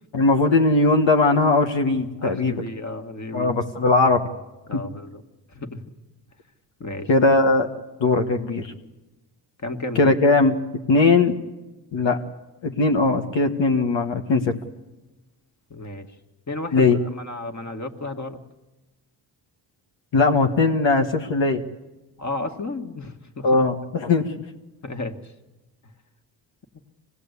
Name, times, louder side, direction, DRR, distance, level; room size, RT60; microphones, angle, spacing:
voice 1, 0.1-2.5 3.3-4.3 4.7-4.8 7.1-7.7 8.0-8.7 9.9-10.5 10.9-11.4 11.9-12.2 12.6-14.5 16.7-17.0 20.1-21.6 23.4-24.3, left 3 dB, 70° left, 4 dB, 1.6 m, -19 dB
voice 2, 2.2-3.5 4.7-5.2 5.5-5.8 6.8-7.1 9.6-10.1 15.7-16.1 16.5-18.4 22.2-23.6 24.8-25.3, left 2 dB, 35° left, 7 dB, 2.2 m, -33 dB
25.5 x 19.0 x 8.4 m, 1.1 s
supercardioid pair, 55°, 48 cm